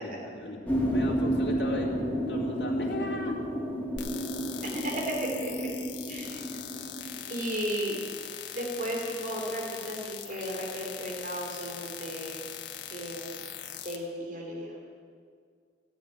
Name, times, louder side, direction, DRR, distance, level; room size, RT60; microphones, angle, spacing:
voice 1, 0.0-3.4, left 1 dB, 70° left, -3 dB, 2.6 m, -36 dB
sound 1, 0.6-7.2, equal, 10° left, 2.2 m, -31 dB
sound 2, 4.0-14.0, left 9 dB, 85° left, 1.4 m, -41 dB
voice 2, 4.6-5.7 6.1-6.4 7.3-8.0 8.5-12.4 12.9-13.4 13.8-14.7, equal, 50° right, -1 dB, 2.9 m, -34 dB
15.5 x 9.1 x 9.0 m, 2.1 s
head